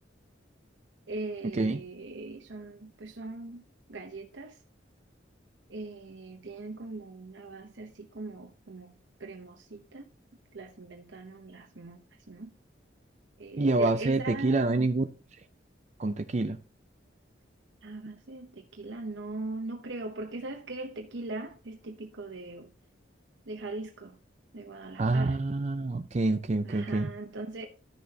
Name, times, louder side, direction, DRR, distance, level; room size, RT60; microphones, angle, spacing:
voice 1, 1.1-3.6 3.9-4.6 5.7-8.9 9.2-10.0 10.5-12.0 12.3-12.5 13.4-14.9 17.8-22.7 23.5-24.2 24.5-25.4 26.6-27.7, right 2 dB, 75° right, 0.9 m, -40 dB
voice 2, 13.6-15.1 16.0-16.6 25.0-27.1, right 2 dB, 35° right, 0.5 m, -27 dB
13.0 x 6.7 x 2.8 m
head